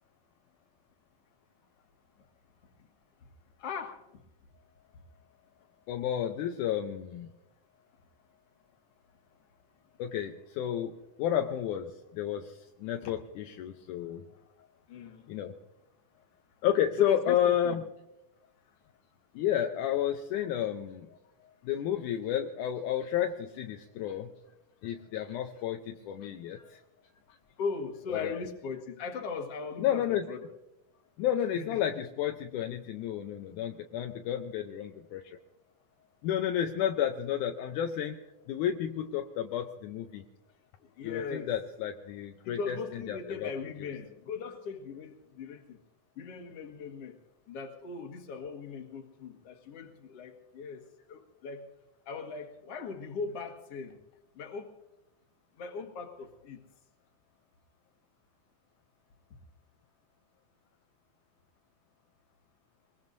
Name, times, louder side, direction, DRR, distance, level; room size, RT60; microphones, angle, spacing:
voice 1, 3.6-4.0 13.0-13.1 14.9-15.3 17.0-17.8 27.6-30.5 31.5-31.8 41.0-41.6 42.4-45.8 46.2-47.2 47.5-51.6 52.1-54.0 54.4-54.7 55.6-56.6, left 4 dB, 50° left, 3 dB, 2.3 m, -39 dB
voice 2, 5.9-7.3 10.0-10.9 11.2-14.2 15.3-15.5 16.6-17.8 19.4-21.1 21.6-24.3 24.8-26.8 28.1-28.4 29.8-30.3 31.2-35.4 36.2-38.2 38.5-40.2 41.0-43.5, left 10 dB, 75° left, 5 dB, 1.9 m, -31 dB
22.0 x 21.5 x 2.7 m, 0.92 s
omnidirectional pair, 4.3 m